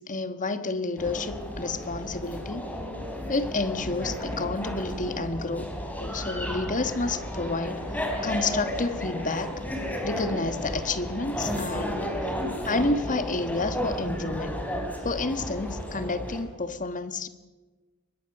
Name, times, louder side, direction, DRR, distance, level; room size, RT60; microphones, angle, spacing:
voice 1, 0.0-2.7 3.3-5.7 6.0-7.8 8.2-9.5 10.0-12.1 12.7-14.6 15.0-17.3, left 3 dB, 35° left, 11 dB, 1.4 m, -30 dB
sound 1, 1.0-16.4, equal, 5° left, 4.2 m, -33 dB
23.5 x 20.5 x 6.8 m, 1.2 s
head